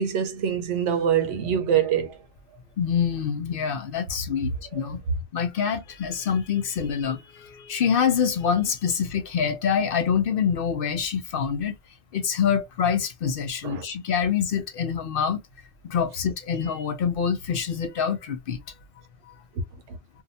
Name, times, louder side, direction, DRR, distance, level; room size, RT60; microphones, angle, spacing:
voice 1, 0.0-2.2 4.7-4.9 13.6-13.8 19.9-20.0, right 8 dB, 75° right, 0.9 m, -24 dB
voice 2, 2.8-5.0 5.3-11.7 12.1-15.4 15.8-18.6, left 7 dB, 60° left, 0.6 m, -25 dB
2.7 x 2.2 x 2.5 m
omnidirectional pair, 1.3 m